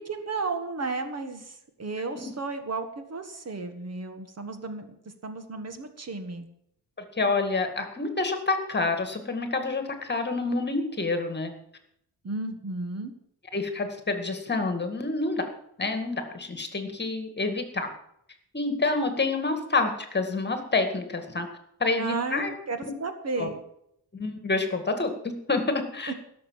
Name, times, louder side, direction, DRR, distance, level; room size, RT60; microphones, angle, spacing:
voice 1, 0.1-6.5 12.2-13.1 22.0-23.6 26.1-26.2, right 3 dB, 40° right, 7 dB, 1.7 m, -33 dB
voice 2, 7.2-11.5 13.5-15.4 15.8-17.9 18.5-21.5 21.8-22.5 22.8-22.9 23.4-23.5 24.1-26.1, left 3 dB, 25° left, 7 dB, 2.1 m, -28 dB
16.5 x 7.0 x 7.4 m, 0.74 s
cardioid pair, 120°, 40 cm